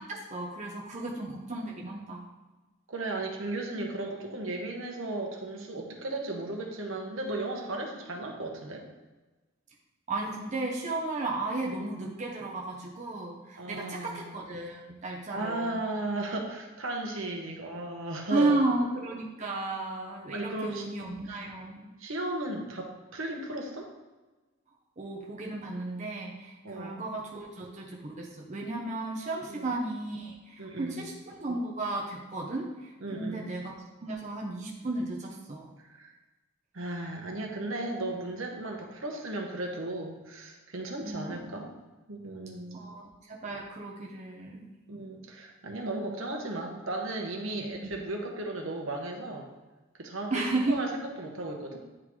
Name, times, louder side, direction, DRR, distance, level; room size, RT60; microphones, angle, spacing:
voice 1, 0.0-2.3 10.1-15.8 18.3-21.9 25.0-33.7 34.0-35.7 41.0-41.6 42.7-44.7 47.6-47.9 50.3-50.8, right 2 dB, 35° right, -1 dB, 0.7 m, -34 dB
voice 2, 2.9-8.8 13.6-14.3 15.3-18.6 20.3-20.9 21.3-21.4 22.0-23.9 26.6-27.0 29.5-29.7 30.6-31.0 33.0-33.5 35.8-36.1 36.7-41.7 42.1-42.9 44.9-49.5 50.0-51.8, right 2 dB, 70° right, 1 dB, 1.1 m, -35 dB
9.7 x 3.7 x 3.1 m, 1.2 s
head